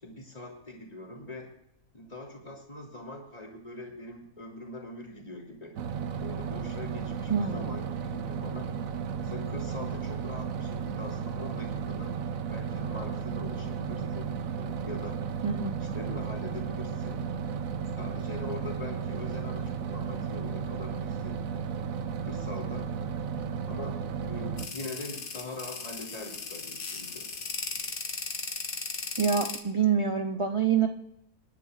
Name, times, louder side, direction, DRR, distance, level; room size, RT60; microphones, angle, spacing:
voice 1, 0.0-1.5 1.9-5.7 6.2-8.7 9.2-12.1 12.5-15.2 15.8-17.3 17.8-21.4 22.2-22.9 23.6-27.3, left 2 dB, 25° left, -1 dB, 3.1 m, -42 dB
Overhead Projector On Run Off Close, 5.8-24.7, right 7 dB, 65° right, 1.2 m, -34 dB
voice 2, 7.3-7.8 15.4-15.8 29.2-30.9, right 7 dB, 35° right, 5 dB, 0.5 m, -26 dB
sound 1, 24.6-29.6, left 4 dB, 65° left, 1.8 m, -37 dB
26.0 x 11.0 x 2.5 m, 0.76 s
omnidirectional pair, 1.7 m